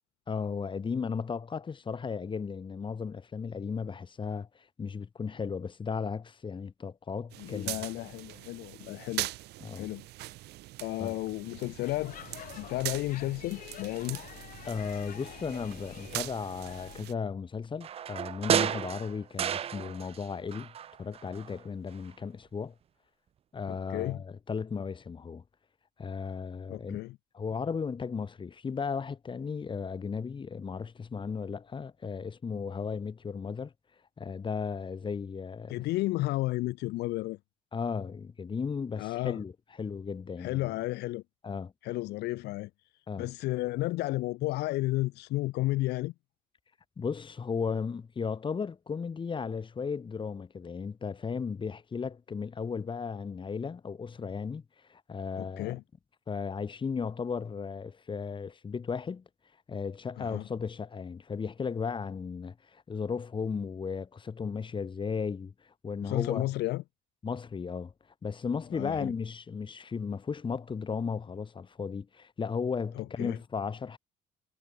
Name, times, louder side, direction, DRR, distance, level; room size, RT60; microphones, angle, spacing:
voice 1, 0.3-7.8 9.6-9.9 11.0-11.2 14.6-20.7 21.0-22.7 23.5-25.4 26.0-27.0 27.3-33.7 34.2-35.7 37.7-39.5 39.8-40.8 41.4-41.7 43.1-43.3 47.0-54.6 54.9-55.8 56.3-59.2 59.7-65.5 65.8-66.5 67.2-67.9 68.2-74.0, left 5 dB, 30° left, 1.8 m, -35 dB
sound 1, 7.3-17.1, right 18 dB, 80° right, 1.3 m, -42 dB
voice 2, 7.4-9.3 9.7-10.1 10.8-12.1 12.6-14.2 23.7-24.2 26.7-27.2 35.7-37.4 39.0-39.4 40.4-41.2 41.8-46.1 55.4-55.8 60.2-60.4 66.0-66.8 68.7-69.1 73.0-73.4, left 18 dB, 80° left, 1.0 m, -32 dB
Speech / Shout / Subway metro underground, 11.8-17.1, left 11 dB, 55° left, 0.8 m, -47 dB
sound 2, 17.8-20.3 20.5-21.6 21.9-22.0, right 9 dB, 35° right, 0.4 m, -32 dB
cardioid pair, 110°, 17 cm